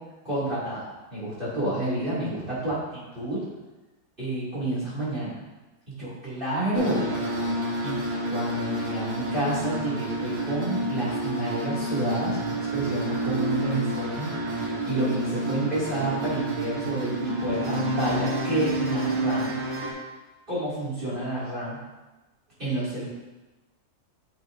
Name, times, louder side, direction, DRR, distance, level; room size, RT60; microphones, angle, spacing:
voice 1, 0.2-0.8 1.1-3.4 4.2-5.4 5.9-7.1 7.8-8.0 8.3-19.5 20.5-21.8 22.6-23.1, right 1 dB, 35° right, -10 dB, 2.7 m, -29 dB
sound 1, 6.7-19.9, right 1 dB, 70° right, 1.8 m, -29 dB
8.6 x 6.1 x 2.6 m, 1.1 s
omnidirectional pair, 1.6 m